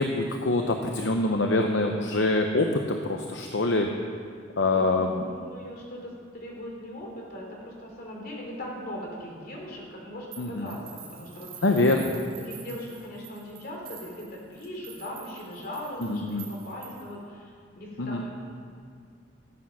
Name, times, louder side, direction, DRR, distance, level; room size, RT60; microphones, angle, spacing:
voice 1, 0.0-3.9 4.6-5.2 10.4-10.7 11.6-12.1 16.0-16.5 18.0-18.2, left 2 dB, 70° left, 3 dB, 0.8 m, -25 dB
voice 2, 4.6-11.7 12.1-18.3, left 1 dB, 55° left, -1 dB, 2.9 m, -40 dB
sound 1, 10.3-17.2, right 7 dB, 50° right, 2.7 m, -47 dB
14.0 x 8.6 x 6.1 m, 2.1 s
head